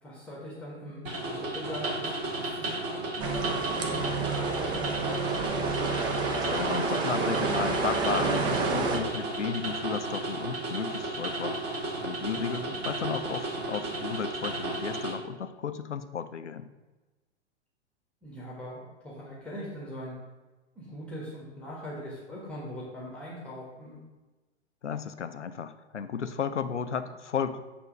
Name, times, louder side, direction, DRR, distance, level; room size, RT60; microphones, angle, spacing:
voice 1, 0.0-3.9 4.3-5.6 12.4-12.8 18.2-20.1 20.7-24.0, equal, 5° left, -5 dB, 1.3 m, -41 dB
sound 1, 1.1-15.1, right 2 dB, 30° right, 2.0 m, -34 dB
sound 2, 3.2-9.0, right 4 dB, 15° right, 0.5 m, -29 dB
voice 2, 6.4-11.6 12.0-16.7 24.8-27.6, left 7 dB, 80° left, 11 dB, 0.5 m, -34 dB
8.3 x 3.0 x 5.2 m, 1.2 s
figure-of-eight pair, 105°, 35 cm